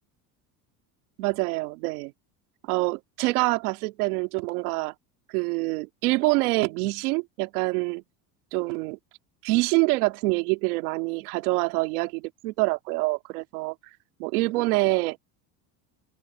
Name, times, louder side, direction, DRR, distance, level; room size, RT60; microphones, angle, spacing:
voice 1, 1.2-2.1 2.7-4.9 5.3-8.0 8.5-9.0 9.4-13.7 14.2-15.2, right 23 dB, 90° right, 2.5 m, -26 dB
open air
supercardioid pair, 115°, 44 cm